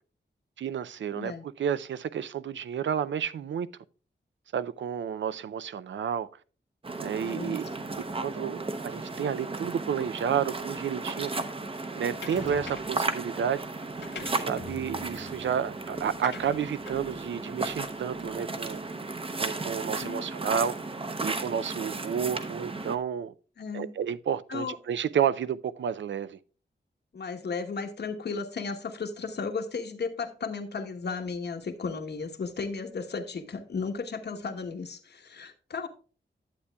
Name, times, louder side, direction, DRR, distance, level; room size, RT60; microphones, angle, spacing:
voice 1, 0.6-3.7 4.5-6.3 7.0-7.6 8.2-11.3 12.0-13.6 14.3-18.8 19.4-20.8 21.2-23.3 23.7-26.4, right 8 dB, 90° right, 0.5 m, -31 dB
voice 2, 1.1-1.4 7.2-7.6 20.0-20.3 23.6-23.9 24.5-24.8 27.1-35.9, left 4 dB, 65° left, 1.1 m, -35 dB
sound 1, 6.8-23.0, right 3 dB, 30° right, 0.7 m, -35 dB
sound 2, 12.2-13.1 13.8-18.5, left 4 dB, 80° left, 2.0 m, -45 dB
11.5 x 8.2 x 2.3 m
wide cardioid pair, 165°, 19 cm